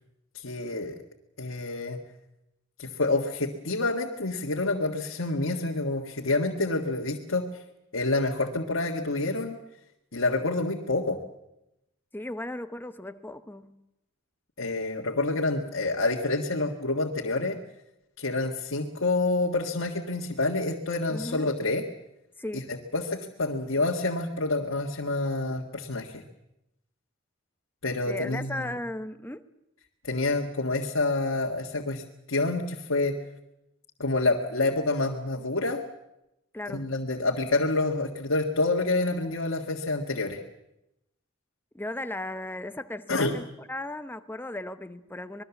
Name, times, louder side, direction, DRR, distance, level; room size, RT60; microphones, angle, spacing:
voice 1, 0.3-1.0 1.4-2.0 2.8-7.6 7.9-9.6 10.1-11.2 14.6-17.6 18.2-21.8 22.5-26.2 27.8-28.7 30.0-32.0 32.3-33.2 34.0-35.8 36.7-40.4 43.1-43.3, left 2 dB, 85° left, 0 dB, 1.7 m, -28 dB
voice 2, 12.1-13.9 21.1-21.5 22.4-22.6 28.1-29.5 36.5-36.9 41.7-45.4, left 1 dB, 10° left, 10 dB, 0.9 m, -36 dB
26.0 x 21.0 x 7.1 m, 0.89 s
head